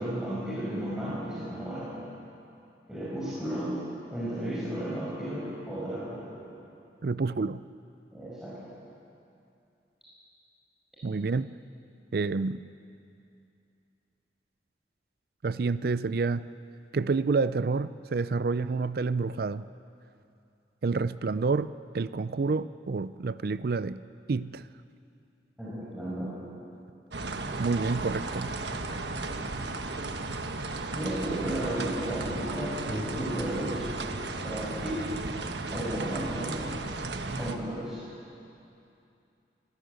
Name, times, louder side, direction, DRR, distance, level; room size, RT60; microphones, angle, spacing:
voice 1, 0.0-1.9 2.9-3.7 4.1-6.3 8.1-8.6 25.6-26.3 30.9-33.9 34.4-35.1 35.7-36.6 37.2-38.0, right 1 dB, 5° right, -10 dB, 5.7 m, -34 dB
voice 2, 7.0-7.6 11.0-11.5 12.1-12.6 15.4-16.5 16.9-19.7 20.8-24.0 24.3-24.7 27.6-28.5, right 4 dB, 60° right, 15 dB, 0.4 m, -28 dB
sound 1, 27.1-37.5, right 2 dB, 80° right, 1.3 m, -35 dB
24.5 x 16.5 x 8.2 m, 2.6 s
head